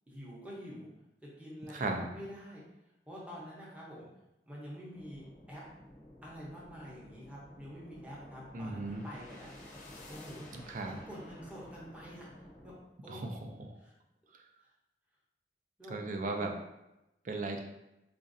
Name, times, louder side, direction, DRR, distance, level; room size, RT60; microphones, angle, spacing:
voice 1, 0.1-0.9 1.2-2.6 3.1-4.1 4.5-5.6 6.2-9.5 10.1-10.5 10.9-12.3 12.6-12.7 13.0-13.4 13.8-13.9 15.8-16.5, equal, 10° right, -6 dB, 0.7 m, -47 dB
voice 2, 1.7-2.1 8.5-9.0 10.5-11.0 13.1-13.7 14.3-14.4 15.9-16.6 17.2-17.6, right 2 dB, 45° right, 3 dB, 0.4 m, -37 dB
sound 1, 4.9-12.8, left 1 dB, 45° left, 0.6 m, -52 dB
4.0 x 2.5 x 2.5 m, 0.92 s
head